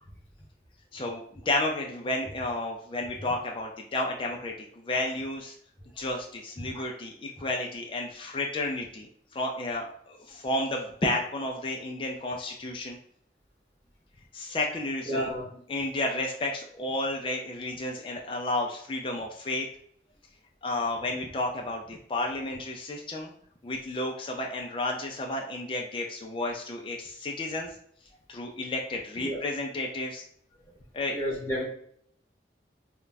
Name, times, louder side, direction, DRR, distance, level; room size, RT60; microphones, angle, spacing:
voice 1, 0.9-5.6 6.0-13.0 14.3-15.3 15.7-19.7 20.6-23.3 23.6-27.7 28.3-30.2 30.9-31.1, left 2 dB, 30° left, 1 dB, 0.3 m, -32 dB
voice 2, 15.0-15.5 29.2-29.4 30.6-30.7 31.1-31.6, equal, 10° left, -5 dB, 1.0 m, -31 dB
2.3 x 2.1 x 3.9 m, 0.64 s
head